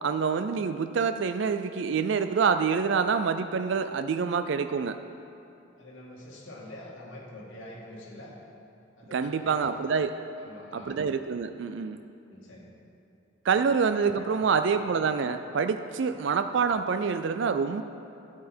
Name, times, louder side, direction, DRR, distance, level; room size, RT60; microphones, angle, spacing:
voice 1, 0.0-5.0 9.1-10.1 10.7-12.0 13.4-17.8, right 5 dB, 70° right, 9 dB, 0.4 m, -26 dB
voice 2, 5.8-8.4 9.0-9.6 10.4-11.0 12.3-12.7 13.5-13.6 14.2-14.5 16.1-16.2, left 1 dB, 75° left, -3 dB, 2.1 m, -45 dB
13.0 x 8.7 x 4.4 m, 2.8 s
head